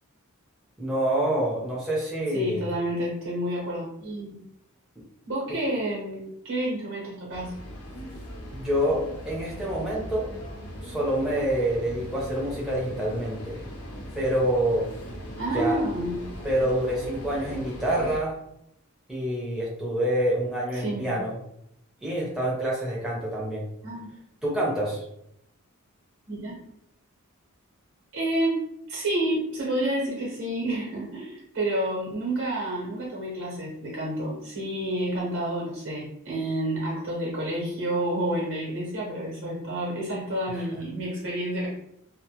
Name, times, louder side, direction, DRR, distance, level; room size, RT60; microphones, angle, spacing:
voice 1, 0.8-2.6 8.5-10.3 10.8-13.6 14.1-14.8 15.5-15.8 16.4-18.4 19.1-21.3 22.0-23.7 24.4-25.0 40.6-40.7, right 1 dB, 5° right, -6 dB, 0.7 m, -27 dB
voice 2, 2.3-4.4 5.3-7.5 15.4-16.2 20.7-21.1 23.8-24.1 26.3-26.6 28.1-28.6 28.9-41.7, right 1 dB, 60° right, -5 dB, 0.9 m, -29 dB
sound 1, 7.3-18.2, equal, 85° left, 0.6 m, -39 dB
2.2 x 2.1 x 2.9 m, 0.78 s
head